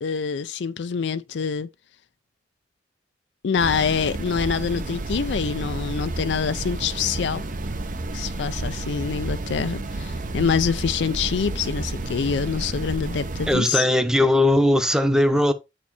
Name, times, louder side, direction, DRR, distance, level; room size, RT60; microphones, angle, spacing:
voice 1, 0.0-1.7 3.4-7.4 8.1-13.9, left 6 dB, 80° left, 0.4 m, -25 dB
sound 1, 3.6-13.6, right 2 dB, 45° right, 0.8 m, -31 dB
voice 2, 13.5-15.5, left 1 dB, 5° right, 0.8 m, -19 dB
8.2 x 4.5 x 4.2 m
head